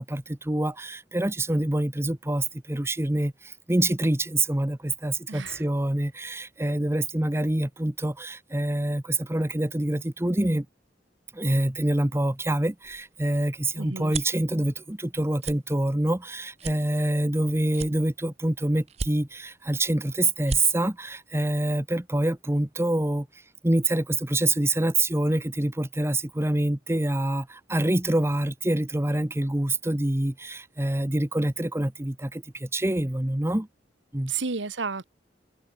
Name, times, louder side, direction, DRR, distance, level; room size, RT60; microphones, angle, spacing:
voice 1, 0.0-10.7 11.3-23.3 23.6-33.7 34.1-34.3, right 1 dB, 15° right, 0.9 m, -26 dB
voice 2, 5.3-5.7 13.8-14.1 34.3-35.0, right 5 dB, 85° right, 1.2 m, -32 dB
sound 1, 12.8-14.4 14.9-15.1 15.4-15.6 16.1-16.2 16.6-17.4 17.7-18.4 18.9-19.5 20.0-20.1 20.3-20.6, right 4 dB, 35° right, 0.6 m, -35 dB
head